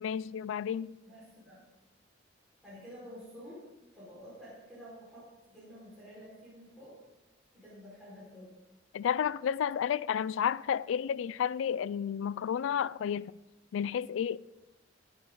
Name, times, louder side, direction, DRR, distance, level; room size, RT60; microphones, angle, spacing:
voice 1, 0.0-1.0 8.9-13.3 13.7-14.4, left 8 dB, 75° left, 0.3 m, -31 dB
voice 2, 1.0-1.6 2.6-3.7 3.9-7.0 7.5-8.5, equal, ahead, 4.9 m, -50 dB
15.5 x 9.0 x 3.9 m
head